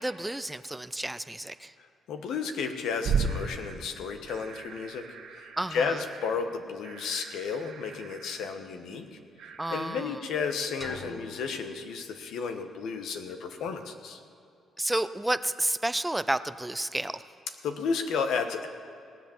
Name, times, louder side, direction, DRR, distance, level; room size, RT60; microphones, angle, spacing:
voice 1, 0.0-1.7 5.6-6.0 9.6-10.2 14.8-17.2, right 1 dB, 10° right, 13 dB, 0.5 m, -31 dB
voice 2, 2.1-14.2 17.6-18.7, left 5 dB, 80° left, 6 dB, 1.2 m, -33 dB
sound 1, 3.0-10.0, right 5 dB, 85° right, 2.0 m, -36 dB
sound 2, 10.8-12.7, left 1 dB, 15° left, 1.6 m, -47 dB
18.5 x 8.0 x 7.2 m, 2.5 s
cardioid pair, 90°, 0 cm